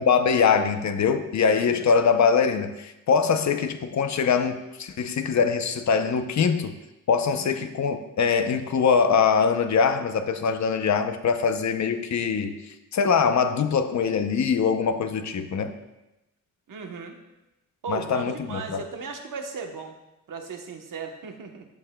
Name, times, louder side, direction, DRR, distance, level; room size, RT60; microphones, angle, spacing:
voice 1, 0.0-6.7 7.1-12.5 12.9-15.7 17.9-18.8, left 6 dB, 55° left, 8 dB, 0.7 m, -23 dB
voice 2, 7.3-7.6 16.7-17.2 17.8-20.0 20.3-21.7, right 5 dB, 75° right, 3 dB, 1.1 m, -36 dB
13.5 x 7.9 x 2.3 m, 0.97 s
wide cardioid pair, 140°, 33 cm